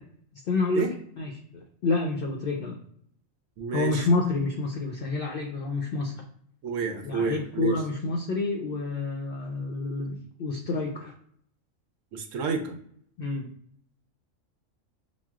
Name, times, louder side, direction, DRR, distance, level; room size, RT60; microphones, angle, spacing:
voice 1, 0.5-0.9 1.2-2.8 3.7-6.1 7.0-11.1 13.2-13.5, left 3 dB, 60° left, 1 dB, 0.7 m, -28 dB
voice 2, 3.6-4.1 6.6-7.8 12.1-12.8, right 5 dB, 80° right, 4 dB, 0.9 m, -29 dB
5.9 x 2.2 x 2.3 m, 0.65 s
omnidirectional pair, 1.3 m